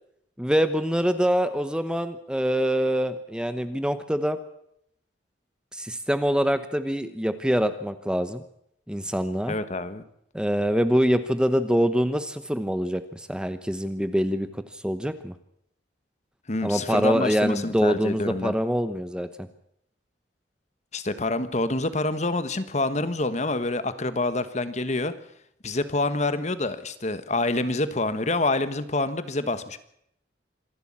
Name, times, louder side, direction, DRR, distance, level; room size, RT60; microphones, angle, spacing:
voice 1, 0.4-4.4 5.7-8.4 8.9-9.5 10.3-15.3 16.6-19.3, equal, 5° right, 11 dB, 1.0 m, -25 dB
voice 2, 9.5-10.0 16.5-18.5 20.9-25.1 25.6-29.8, left 2 dB, 40° left, 12 dB, 1.4 m, -27 dB
26.0 x 12.0 x 8.8 m, 0.74 s
head